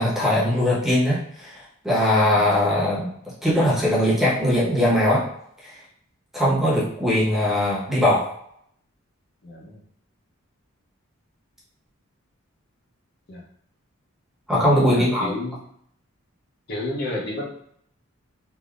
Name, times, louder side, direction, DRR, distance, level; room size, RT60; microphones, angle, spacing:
voice 1, 0.0-3.1 3.4-5.2 5.6-5.7 6.3-8.3 14.5-15.3, left 1 dB, ahead, -7 dB, 1.0 m, -20 dB
voice 2, 9.4-9.8 13.3-13.4 14.8-15.6 16.7-17.4, left 1 dB, 50° left, -3 dB, 0.7 m, -31 dB
3.4 x 2.6 x 2.4 m, 0.70 s
head